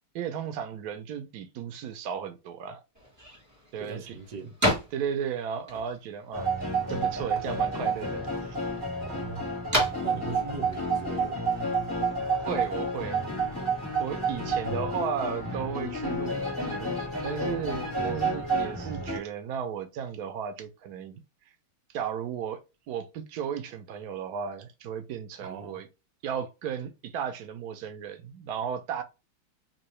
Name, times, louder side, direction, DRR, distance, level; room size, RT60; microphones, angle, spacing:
voice 1, 0.1-2.8 3.7-4.2 4.9-6.5 6.9-8.6 12.3-13.2 14.0-21.2 21.9-22.6 22.9-25.9 26.2-29.0, right 8 dB, 90° right, 0.8 m, -35 dB
sound 1, 2.9-12.1, equal, 10° right, 1.2 m, -35 dB
voice 2, 3.8-4.6 9.0-9.4 10.0-11.6 14.6-14.8 25.4-25.8, right 4 dB, 55° right, 1.5 m, -40 dB
sound 2, 6.3-19.2, right 3 dB, 10° left, 1.6 m, -30 dB
3.9 x 2.7 x 3.0 m
omnidirectional pair, 2.4 m